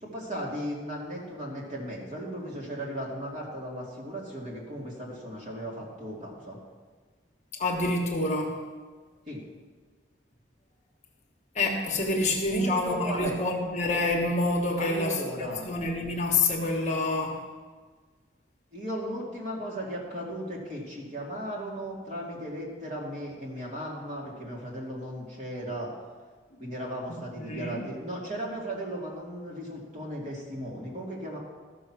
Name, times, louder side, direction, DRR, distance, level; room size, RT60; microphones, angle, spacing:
voice 1, 0.0-6.6 9.3-9.4 12.2-13.4 14.8-15.7 18.7-25.9 26.6-31.4, equal, 40° right, -3 dB, 2.5 m, -36 dB
voice 2, 7.6-8.6 11.5-17.4 27.4-27.8, left 2 dB, 40° left, 2 dB, 1.3 m, -27 dB
13.5 x 6.4 x 6.1 m, 1.5 s
head